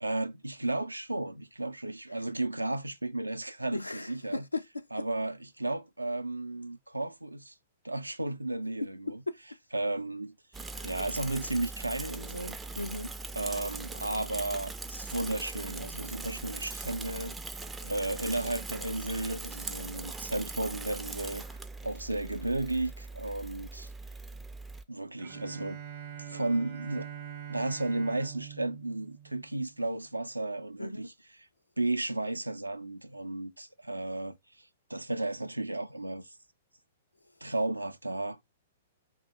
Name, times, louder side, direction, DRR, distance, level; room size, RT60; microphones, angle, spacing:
voice 1, 0.0-4.5 4.9-7.5 7.8-9.2 9.7-10.4 10.8-12.6 13.3-17.4 17.8-21.4 21.8-23.9 24.9-25.8 26.2-27.1 27.5-31.5 31.8-36.3 37.4-38.4, right 2 dB, 85° right, 0.4 m, -34 dB
voice 2, 3.7-4.8 9.3-9.4 10.7-10.8 12.8-13.1 30.8-31.0, left 2 dB, 85° left, 0.3 m, -36 dB
Bicycle / Mechanisms, 10.5-24.8, right 3 dB, 10° right, 0.3 m, -41 dB
Bowed string instrument, 25.2-30.1, right 9 dB, 50° right, 0.7 m, -44 dB
2.7 x 2.1 x 4.0 m
figure-of-eight pair, 110°, 0 cm